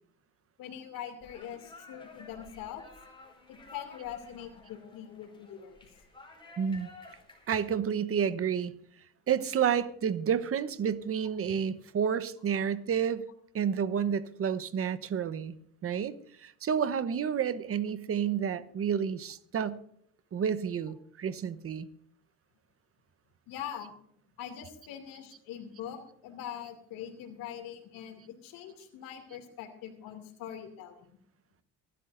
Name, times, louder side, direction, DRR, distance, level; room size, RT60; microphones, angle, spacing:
voice 1, 0.6-2.9 3.5-5.8 11.4-11.6 23.5-23.9 24.4-31.0, left 9 dB, 70° left, 6 dB, 2.7 m, -43 dB
sound 1, 1.2-7.7, left 3 dB, 15° left, 5.0 m, -53 dB
voice 2, 6.6-6.9 7.5-8.7 9.3-13.3 13.5-15.6 15.8-19.8 20.3-21.9, right 7 dB, 40° right, 12 dB, 1.1 m, -30 dB
24.5 x 12.5 x 2.6 m, 0.66 s
supercardioid pair, 75°, 35 cm